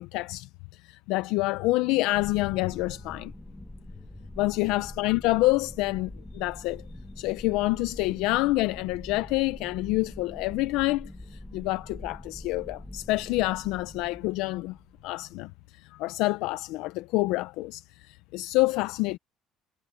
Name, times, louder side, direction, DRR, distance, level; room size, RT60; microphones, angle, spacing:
voice 1, 0.0-3.3 4.4-6.8 7.2-14.8 15.0-19.2, left 20 dB, 80° left, 0.5 m, -27 dB
sound 1, 2.1-15.4, left 1 dB, 5° left, 1.7 m, -44 dB
supercardioid pair, 95°, 0 cm